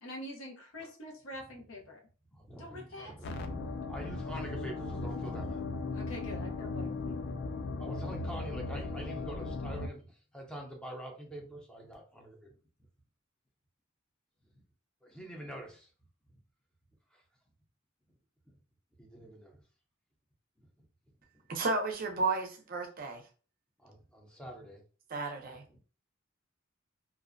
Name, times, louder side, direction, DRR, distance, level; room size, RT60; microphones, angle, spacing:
voice 1, 0.0-2.0 2.6-3.1 5.9-7.3, left 1 dB, 85° left, 0.7 m, -45 dB
voice 2, 2.3-7.0 7.8-12.5 14.5-14.6 15.0-15.9 16.3-16.4 17.1-17.2 19.0-19.6 20.8-20.9 23.8-24.8 25.3-25.5, right 1 dB, 5° left, 0.5 m, -46 dB
sound 1, 3.2-9.9, left 3 dB, 55° left, 0.3 m, -37 dB
voice 3, 21.5-23.2 25.1-25.6, right 3 dB, 45° right, 0.5 m, -33 dB
2.4 x 2.0 x 2.5 m
head